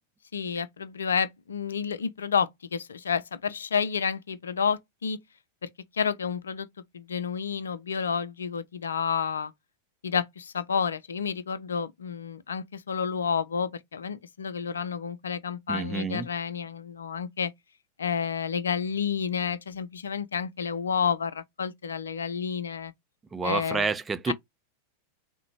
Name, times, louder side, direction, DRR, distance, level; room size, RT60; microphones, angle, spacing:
voice 1, 0.3-5.2 5.6-5.7 5.9-6.7 6.9-9.5 10.0-17.5 18.0-22.9 23.4-23.9 24.3-24.4, left 6 dB, 70° left, 0.5 m, -30 dB
voice 2, 15.7-16.3 23.3-24.3, right 5 dB, 15° right, 0.5 m, -29 dB
5.9 x 2.1 x 3.1 m
figure-of-eight pair, 90°, 0 cm